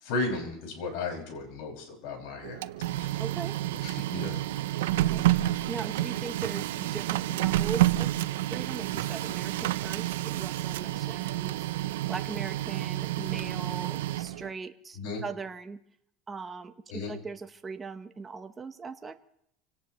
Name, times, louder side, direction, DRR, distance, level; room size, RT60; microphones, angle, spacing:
voice 1, 0.0-2.6 3.0-3.1 3.8-4.4 14.9-15.2 16.9-17.1, left 3 dB, 65° left, 1 dB, 5.8 m, -34 dB
Printer, 2.4-14.5, right 15 dB, 90° right, 0.6 m, -29 dB
voice 2, 3.2-3.6 4.5-4.6 5.1-8.1 8.5-11.6 12.1-15.8 16.3-19.2, right 4 dB, 15° right, 7 dB, 0.9 m, -40 dB
27.0 x 17.5 x 3.0 m, 0.74 s
supercardioid pair, 135°, 0 cm